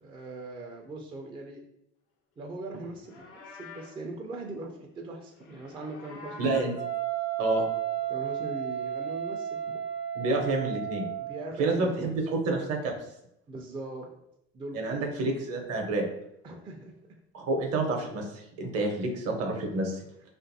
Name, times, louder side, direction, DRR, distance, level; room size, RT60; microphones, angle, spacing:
voice 1, 0.0-1.6 2.4-6.5 8.1-9.8 11.2-12.2 13.5-14.1 14.5-15.2 16.4-16.9, right 2 dB, 15° right, 0 dB, 0.3 m, -40 dB
Livestock farm animals working animals, 2.9-4.0 5.3-6.8, left 3 dB, 85° left, 0.6 m, -47 dB
voice 2, 6.4-6.7 7.4-7.6 10.1-11.1 11.6-12.9 14.7-16.0 17.3-20.0, right 2 dB, 50° right, 2 dB, 0.7 m, -28 dB
Wind instrument woodwind instrument, 6.7-11.4, right 11 dB, 80° right, 0.7 m, -33 dB
2.6 x 2.5 x 2.6 m, 0.78 s
hypercardioid pair, 85°, 33 cm